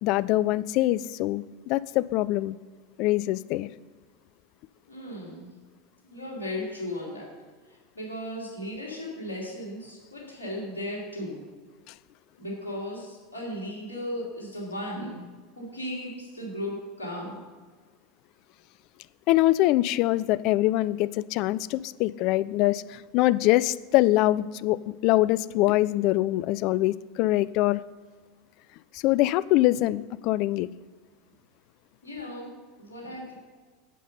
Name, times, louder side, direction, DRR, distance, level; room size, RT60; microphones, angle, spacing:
voice 1, 0.0-2.6 3.0-3.7 19.3-27.8 28.9-30.7, left 16 dB, 50° left, 18 dB, 0.3 m, -24 dB
voice 2, 4.9-5.5 6.0-7.2 7.9-11.4 12.4-15.2 15.6-17.4 32.0-32.5 32.8-33.3, left 1 dB, 85° left, -5 dB, 2.9 m, -36 dB
8.4 x 6.7 x 5.4 m, 1.5 s
figure-of-eight pair, 80°, 0 cm